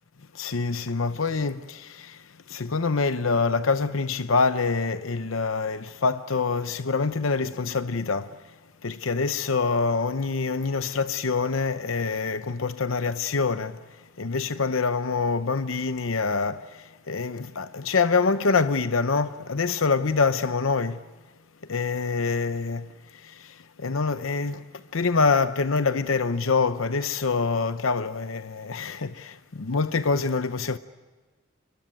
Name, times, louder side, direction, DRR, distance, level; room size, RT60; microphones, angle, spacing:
voice 1, 0.3-8.3 8.8-13.8 14.2-21.0 21.7-30.8, left 4 dB, 80° left, 0.8 m, -26 dB
27.5 x 23.5 x 9.1 m
head